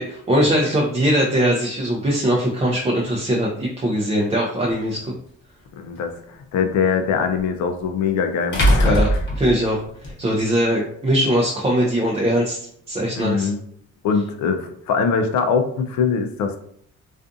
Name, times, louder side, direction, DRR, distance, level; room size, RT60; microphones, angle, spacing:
voice 1, 0.0-5.1 8.8-9.1 9.4-13.5, equal, 20° right, -2 dB, 0.5 m, -21 dB
sound 1, 4.7-4.8 7.4-7.5 8.5-10.1, equal, 40° left, 1.0 m, -19 dB
voice 2, 5.8-9.0 13.2-13.6 14.0-16.6, left 5 dB, 70° left, 6 dB, 0.5 m, -22 dB
2.5 x 2.4 x 2.5 m, 0.66 s
cardioid pair, 90°, 30 cm